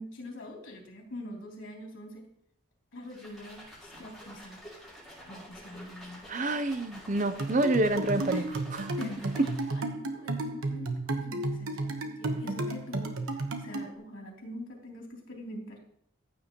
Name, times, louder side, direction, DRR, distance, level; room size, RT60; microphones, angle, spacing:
voice 1, 0.0-2.3 2.9-4.6 5.3-6.3 8.3-8.4 8.9-15.8, left 1 dB, 70° left, -1 dB, 3.2 m, -44 dB
sound 1, 3.0-9.9, equal, ahead, 5.2 m, -49 dB
voice 2, 6.3-8.9, right 2 dB, 35° right, 10 dB, 0.6 m, -28 dB
sound 2, 7.4-13.9, right 2 dB, 85° right, 1.2 m, -33 dB
15.0 x 8.9 x 3.0 m, 0.72 s
head